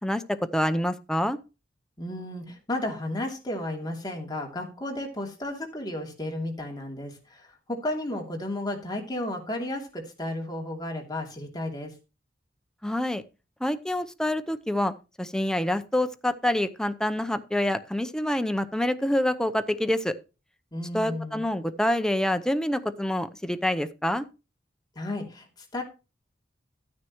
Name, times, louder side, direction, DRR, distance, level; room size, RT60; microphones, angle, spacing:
voice 1, 0.0-1.4 12.8-13.2 13.6-14.9 15.2-20.1 20.9-24.2, left 1 dB, 5° left, 10 dB, 0.7 m, -26 dB
voice 2, 2.0-11.9 20.7-21.4 24.9-25.8, left 1 dB, 25° left, 1 dB, 2.7 m, -33 dB
12.5 x 9.6 x 3.0 m, 0.30 s
head